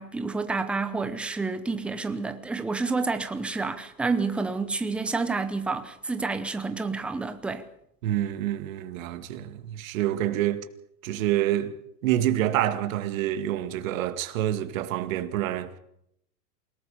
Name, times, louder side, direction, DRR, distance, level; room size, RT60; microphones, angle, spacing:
voice 1, 0.0-7.6, right 4 dB, ahead, 0.7 m, -29 dB
voice 2, 8.0-10.6 11.0-11.7 12.0-15.8, right 12 dB, 55° right, 2.1 m, -27 dB
28.0 x 18.5 x 5.1 m
hypercardioid pair, 150°, 49 cm